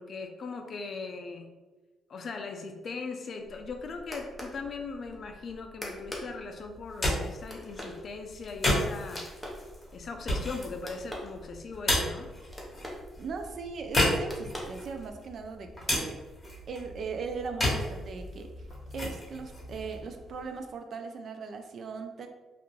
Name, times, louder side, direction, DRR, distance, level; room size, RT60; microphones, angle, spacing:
voice 1, 0.0-1.5 2.1-9.5 9.9-12.3, left 4 dB, 50° left, 5 dB, 0.4 m, -39 dB
sound 1, 3.4-15.3, equal, 5° right, 0.7 m, -46 dB
sound 2, 6.7-20.7, left 1 dB, 25° left, 1.0 m, -33 dB
voice 2, 13.2-16.2 16.7-18.7 18.9-22.3, right 5 dB, 55° right, 6 dB, 0.3 m, -39 dB
2.4 x 2.2 x 3.1 m, 1.2 s
cardioid pair, 90°, 0 cm